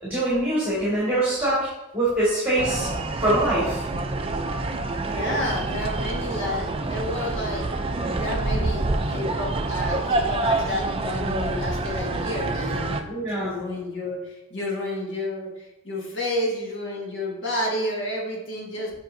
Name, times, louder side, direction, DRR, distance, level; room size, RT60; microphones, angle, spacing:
voice 1, 0.0-1.6 1.9-2.9 3.2-3.9 13.1-13.5, right 1 dB, 10° right, -9 dB, 1.8 m, -23 dB
sound 1, 2.6-13.0, right 2 dB, 25° right, 0.4 m, -27 dB
voice 2, 5.0-7.7 8.1-18.9, left 1 dB, 60° left, -2 dB, 1.6 m, -30 dB
7.5 x 5.1 x 2.7 m, 0.94 s
head